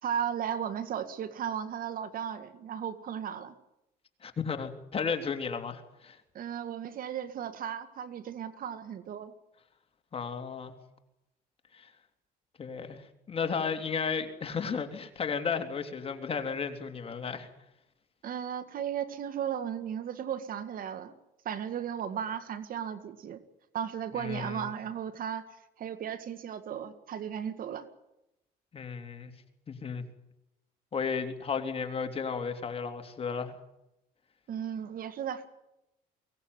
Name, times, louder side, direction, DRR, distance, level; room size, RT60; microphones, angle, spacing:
voice 1, 0.0-3.5 6.3-9.3 18.2-21.2 21.5-23.4 23.7-25.4 25.8-27.9 34.5-35.5, right 8 dB, 55° right, 11 dB, 2.0 m, -35 dB
voice 2, 4.2-6.2 10.1-10.7 11.7-11.9 12.6-17.5 24.1-24.6 28.7-29.3 29.7-30.0 30.9-33.5, left 6 dB, 35° left, 6 dB, 3.2 m, -34 dB
23.5 x 18.0 x 9.7 m, 0.88 s
cardioid pair, 110°, 17 cm